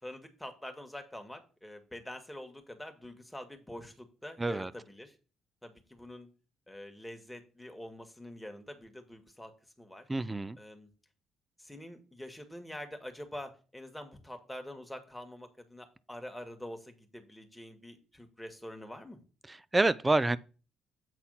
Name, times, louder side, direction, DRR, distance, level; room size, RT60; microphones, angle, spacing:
voice 1, 0.0-5.2 5.6-6.3 6.7-9.5 9.8-10.1 10.6-10.9 11.6-19.2, left 1 dB, 5° left, 1.9 m, -46 dB
voice 2, 4.4-4.7 10.1-10.6 19.5-20.4, right 2 dB, 20° right, 0.5 m, -28 dB
8.1 x 4.1 x 5.7 m
hypercardioid pair, 55°, 0 cm